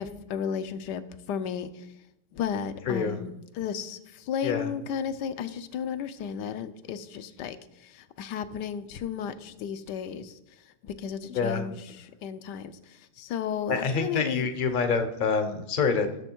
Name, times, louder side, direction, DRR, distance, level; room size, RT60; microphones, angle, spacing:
voice 1, 0.0-1.9 2.3-14.5, left 7 dB, 70° left, 12 dB, 1.2 m, -34 dB
voice 2, 2.9-3.2 4.4-4.7 11.3-11.6 13.7-16.2, left 5 dB, 40° left, 8 dB, 0.7 m, -27 dB
12.0 x 7.0 x 4.5 m, 0.86 s
omnidirectional pair, 2.0 m